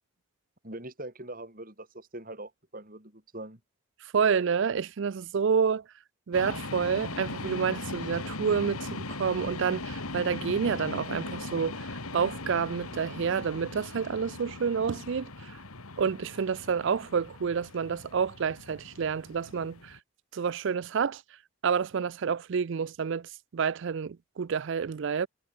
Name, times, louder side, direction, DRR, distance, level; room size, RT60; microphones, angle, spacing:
voice 1, 0.6-3.6, right 1 dB, 40° right, 4.5 m, -42 dB
voice 2, 4.1-5.8 6.3-15.6 16.0-20.0 20.3-21.2 21.6-25.3, right 6 dB, 55° right, 0.4 m, -29 dB
sound 1, 6.3-20.0, left 2 dB, 90° left, 3.0 m, -39 dB
head